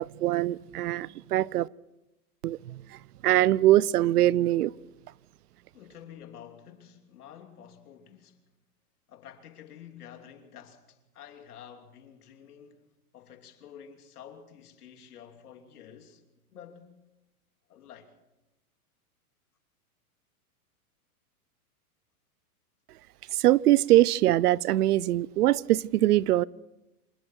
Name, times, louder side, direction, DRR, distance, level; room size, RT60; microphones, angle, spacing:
voice 1, 0.0-1.7 2.4-4.7 23.3-26.4, right 14 dB, 85° right, 0.7 m, -23 dB
voice 2, 5.7-8.4 9.1-12.9 13.1-16.2 16.5-16.9 17.7-18.1, left 9 dB, 80° left, 3.1 m, -49 dB
26.5 x 21.5 x 4.6 m
supercardioid pair, 170°, 44 cm